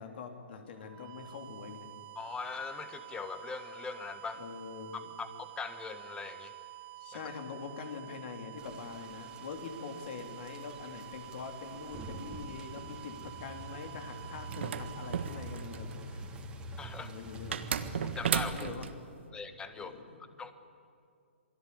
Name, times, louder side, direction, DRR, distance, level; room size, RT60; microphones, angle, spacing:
voice 1, 0.0-1.9 4.4-5.0 7.0-16.3 17.0-17.7 18.5-18.9 19.8-20.2, left 5 dB, 55° left, 5 dB, 3.7 m, -44 dB
sound 1, 0.7-16.5, right 17 dB, 35° right, 2.8 m, -49 dB
voice 2, 2.1-4.4 4.9-6.5 16.8-17.1 18.0-18.7 19.3-19.9 20.4-20.5, left 5 dB, 10° left, 10 dB, 1.6 m, -41 dB
sound 2, 8.6-18.5, right 1 dB, 15° right, 3.0 m, -46 dB
sound 3, 14.5-15.9 17.5-18.9, right 8 dB, 65° right, 1.6 m, -33 dB
27.5 x 21.0 x 8.7 m, 2.3 s
hypercardioid pair, 130°, 7 cm